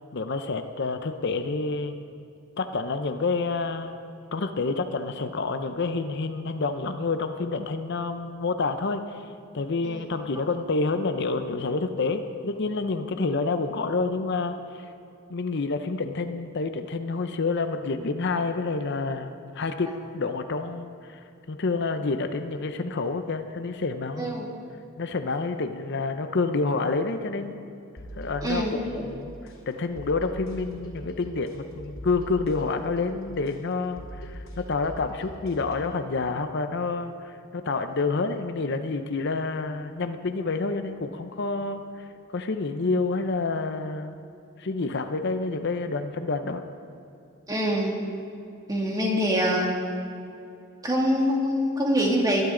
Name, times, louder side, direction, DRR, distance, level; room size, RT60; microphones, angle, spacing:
voice 1, 0.1-2.0 2.6-3.9 4.3-14.9 15.3-24.5 25.0-27.5 28.2-42.1 42.3-44.2 44.6-46.6, left 3 dB, 55° left, 8 dB, 0.6 m, -28 dB
sound 1, 28.0-36.0, right 1 dB, 90° left, 3.4 m, -42 dB
voice 2, 28.4-28.7 47.5-48.0 48.7-49.7 50.8-52.4, equal, 20° right, -2 dB, 2.2 m, -24 dB
22.5 x 12.0 x 3.8 m, 2.6 s
head